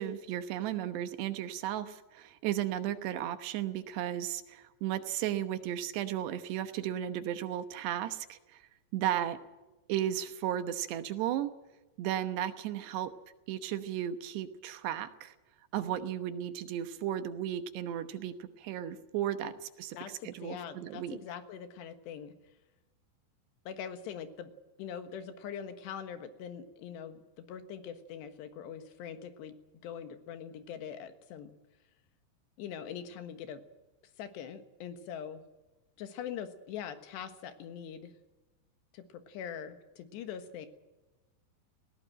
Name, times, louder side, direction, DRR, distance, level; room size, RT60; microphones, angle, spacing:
voice 1, 0.0-8.6 8.9-9.4 9.9-11.5 12.0-13.1 13.5-15.3 15.7-21.2, right 11 dB, 75° right, 10 dB, 3.1 m, -35 dB
voice 2, 19.9-22.3 23.7-24.5 24.8-29.6 29.8-31.6 32.6-33.6 34.2-35.4 36.0-38.1 38.9-40.7, left 8 dB, 75° left, 9 dB, 3.6 m, -43 dB
19.5 x 17.5 x 8.9 m, 1.1 s
omnidirectional pair, 5.1 m